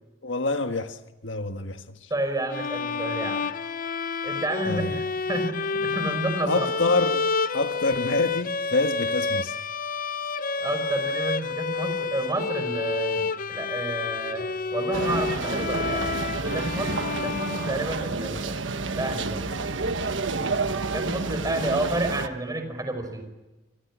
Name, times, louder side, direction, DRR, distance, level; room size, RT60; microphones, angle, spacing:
voice 1, 0.2-2.1 4.6-5.0 6.5-7.2 7.5-9.6, left 2 dB, 75° left, 1.5 m, -27 dB
voice 2, 2.1-3.5 4.2-5.0 5.3-6.7 10.6-16.1 16.5-18.6 18.9-19.5 20.9-23.3, right 2 dB, 20° right, 5.5 m, -30 dB
sound 1, 2.5-18.2, left 4 dB, 50° left, 0.7 m, -29 dB
sound 2, 14.9-22.3, right 3 dB, 85° right, 1.3 m, -29 dB
28.0 x 24.0 x 6.2 m
head